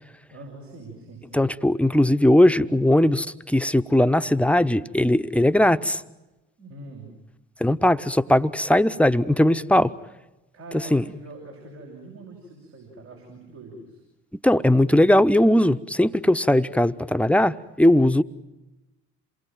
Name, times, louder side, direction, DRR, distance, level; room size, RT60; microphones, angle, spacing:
voice 1, 0.3-1.4 6.6-7.1 10.5-14.0, right 2 dB, 80° right, -5 dB, 6.3 m, -43 dB
voice 2, 1.3-6.0 7.6-9.9 10.9-11.0 14.4-18.2, left 1 dB, 5° left, 11 dB, 0.9 m, -19 dB
28.0 x 20.5 x 9.1 m, 1.0 s
figure-of-eight pair, 45°, 38 cm